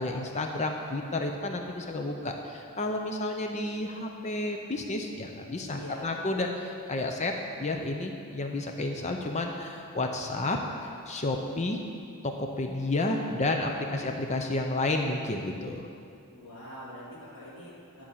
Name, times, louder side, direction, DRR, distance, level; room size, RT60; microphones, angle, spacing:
voice 1, 0.0-10.6 11.1-11.8 12.2-15.9, left 2 dB, 30° left, 3 dB, 0.6 m, -31 dB
voice 2, 5.7-6.1 13.8-14.0 16.3-18.0, left 1 dB, 90° left, -11 dB, 2.6 m, -44 dB
11.0 x 4.4 x 7.3 m, 2.3 s
head